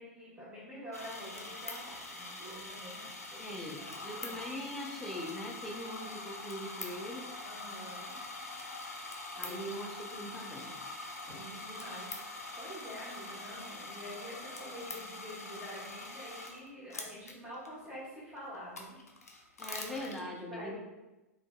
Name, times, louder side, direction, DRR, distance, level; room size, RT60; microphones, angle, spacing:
voice 1, 0.0-3.9 4.2-4.4 7.4-8.1 9.1-9.7 11.3-12.3 12.6-19.0 19.5-20.8, equal, 15° right, -8 dB, 1.2 m, -47 dB
sound 1, 0.9-16.6 16.9-17.7 18.4-20.2, left 2 dB, 85° left, 0.4 m, -44 dB
voice 2, 3.4-7.2 9.4-10.7 19.6-20.8, left 1 dB, 5° left, -2 dB, 0.4 m, -41 dB
2.5 x 2.3 x 2.3 m, 1.0 s
figure-of-eight pair, 95°, 8 cm